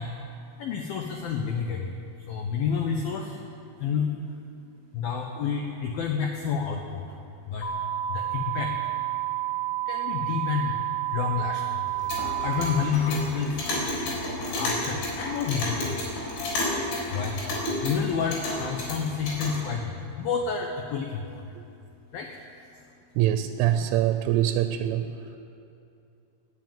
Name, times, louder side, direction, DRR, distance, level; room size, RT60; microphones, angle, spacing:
voice 1, 0.0-23.2, left 6 dB, 85° left, 3 dB, 2.0 m, -31 dB
sound 1, 7.6-12.6, right 13 dB, 45° left, 1.8 m, -30 dB
Clock, 11.9-19.6, left 1 dB, 65° left, 6.0 m, -31 dB
voice 2, 23.2-25.1, right 12 dB, 90° right, 8 dB, 3.2 m, -24 dB
18.0 x 8.0 x 9.1 m, 2.6 s
omnidirectional pair, 5.5 m